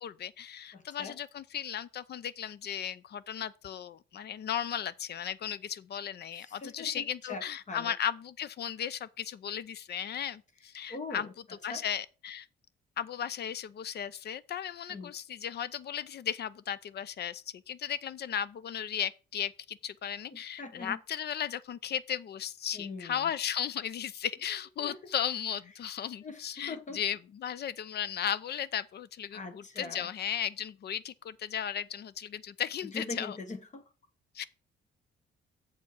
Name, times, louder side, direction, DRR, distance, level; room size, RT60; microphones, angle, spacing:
voice 1, 0.0-11.3 11.6-12.5 13.0-33.4 34.3-34.4, left 9 dB, 55° left, 0.6 m, -36 dB
voice 2, 0.7-1.2 6.3-7.9 10.9-11.3 11.7-11.8 14.9-15.1 20.3-21.0 22.7-23.3 24.8-25.1 26.2-27.0 29.3-30.1 32.8-33.9, left 3 dB, 40° left, 1.2 m, -42 dB
7.3 x 4.5 x 6.0 m
cardioid pair, 90°, 20 cm